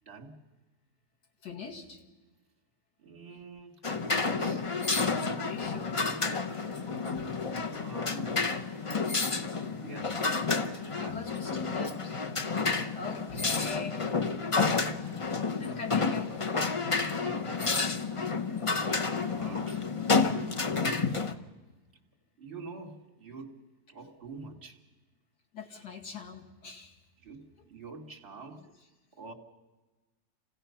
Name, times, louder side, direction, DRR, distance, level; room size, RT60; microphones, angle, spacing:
voice 1, 0.0-0.4 3.0-4.6 7.7-8.4 9.8-10.2 10.9-11.7 17.0-17.6 19.0-19.9 22.4-24.8 27.2-28.7 29.2-29.3, right 4 dB, 40° right, 0 dB, 2.1 m, -46 dB
voice 2, 1.4-2.0 5.3-6.1 7.2-7.3 8.9-9.0 10.7-14.1 14.7-15.3 15.6-16.4 25.5-27.0, left 5 dB, 85° left, 0 dB, 2.7 m, -43 dB
sound 1, 3.8-21.3, left 4 dB, 30° left, 0.6 m, -30 dB
27.5 x 16.5 x 5.7 m, 1.2 s
omnidirectional pair, 1.7 m